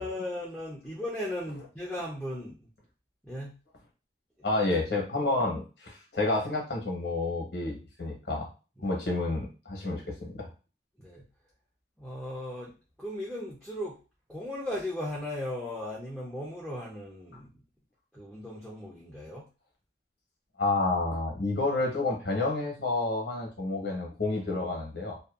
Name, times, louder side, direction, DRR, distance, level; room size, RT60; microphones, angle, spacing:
voice 1, 0.0-2.6 3.2-3.5 8.8-9.0 11.0-11.2 12.0-12.7 13.0-14.0 14.3-17.5 18.1-19.5, left 1 dB, ahead, -5 dB, 0.5 m, -37 dB
voice 2, 4.4-8.5 8.8-10.5 20.6-25.2, left 2 dB, 70° left, 0 dB, 0.9 m, -29 dB
2.7 x 2.2 x 2.3 m, 0.33 s
head